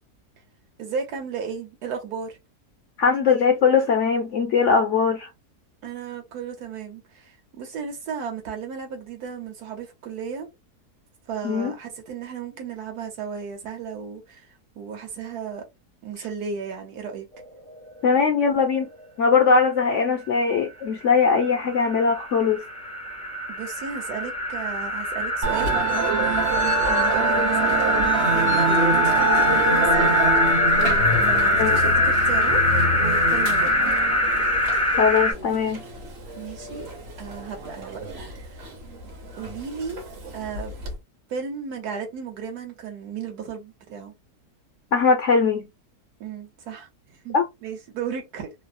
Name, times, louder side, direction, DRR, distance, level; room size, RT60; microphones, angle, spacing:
voice 1, 0.8-2.4 5.8-10.5 11.3-14.4 14.7-15.6 16.0-17.2 23.5-25.8 26.8-30.3 30.8-32.6 32.9-33.9 36.4-36.9 37.2-38.0 38.4-38.7 39.4-40.0 40.3-40.7 41.3-44.1 46.2-47.4 47.6-48.5, right 6 dB, 70° right, 1.4 m, -34 dB
voice 2, 3.0-5.3 11.4-11.7 18.0-18.9 19.2-22.6 31.6-31.8 35.0-35.8 44.9-45.6 47.3-47.5, left 5 dB, 65° left, 0.7 m, -20 dB
sound 1, 17.4-17.5 17.7-17.8 18.2-18.3 21.2-35.3, left 1 dB, 10° left, 0.3 m, -22 dB
Musical instrument, 25.4-40.9, right 3 dB, 50° right, 1.0 m, -26 dB
3.2 x 2.0 x 2.5 m
omnidirectional pair, 1.7 m